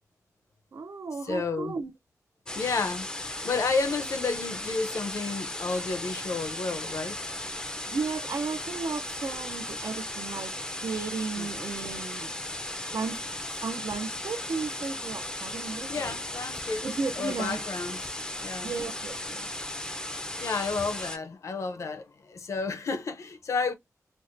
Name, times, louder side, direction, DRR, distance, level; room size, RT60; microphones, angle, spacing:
voice 1, 0.7-1.9 7.9-10.6 10.8-12.3 12.9-13.2 13.6-16.1 16.8-17.6 18.6-19.5, right 4 dB, 60° right, 0.5 m, -34 dB
voice 2, 1.2-1.8 2.5-7.2 11.4-11.5 15.9-16.9 17.2-18.1 18.4-18.7 20.4-23.7, left 4 dB, 60° left, 0.6 m, -31 dB
sound 1, 2.5-21.2, left 1 dB, 15° left, 0.4 m, -36 dB
4.5 x 2.1 x 2.5 m
wide cardioid pair, 145°, 6 cm